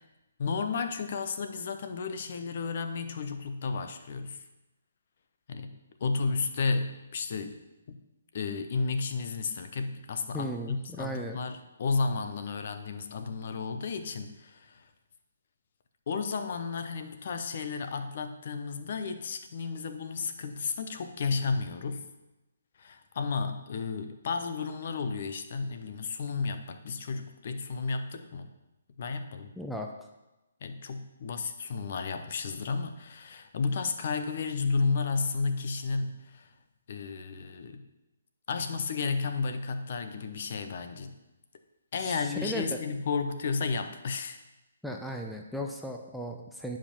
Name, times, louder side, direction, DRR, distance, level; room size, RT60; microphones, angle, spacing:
voice 1, 0.4-4.4 5.5-7.6 7.9-8.0 8.3-14.9 16.1-22.0 22.8-28.5 29.0-29.6 30.6-36.5 36.9-37.9 38.5-41.2 41.9-44.4, left 4 dB, 50° left, 8 dB, 0.9 m, -32 dB
voice 2, 10.3-11.4 29.6-29.9 42.0-42.8 44.8-46.8, equal, ahead, 1 dB, 0.7 m, -36 dB
9.9 x 5.1 x 5.5 m, 1.0 s
figure-of-eight pair, 140°, 0 cm